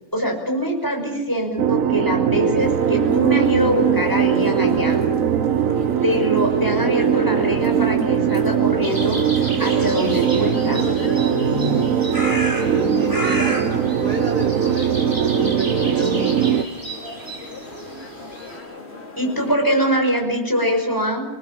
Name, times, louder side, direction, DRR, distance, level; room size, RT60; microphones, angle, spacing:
voice 1, 0.1-5.0 6.0-9.2 9.6-11.0 19.2-21.2, equal, 15° left, 1 dB, 5.5 m, -23 dB
sound 1, 1.6-16.6, right 8 dB, 70° right, 1.3 m, -20 dB
sound 2, 2.6-19.5, left 2 dB, 45° left, 3.7 m, -37 dB
sound 3, 8.8-18.6, right 1 dB, 15° right, 5.4 m, -33 dB
voice 2, 11.3-12.0 12.6-16.5, left 1 dB, 40° right, 2 dB, 5.5 m, -30 dB
26.5 x 19.0 x 7.4 m, 1.1 s
omnidirectional pair, 1.5 m